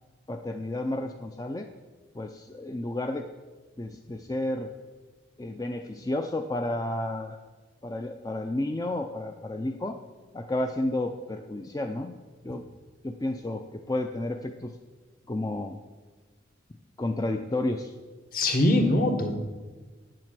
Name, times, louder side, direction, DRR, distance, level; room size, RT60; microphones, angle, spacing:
voice 1, 0.3-1.7 2.1-3.2 3.8-4.7 5.4-7.4 7.8-10.0 10.3-12.1 12.4-12.6 13.0-14.7 15.3-15.8 17.0-17.9, left 1 dB, 20° left, 5 dB, 0.4 m, -31 dB
voice 2, 18.3-19.4, left 1 dB, 50° left, 4 dB, 1.4 m, -22 dB
8.9 x 7.6 x 7.5 m, 1.3 s
head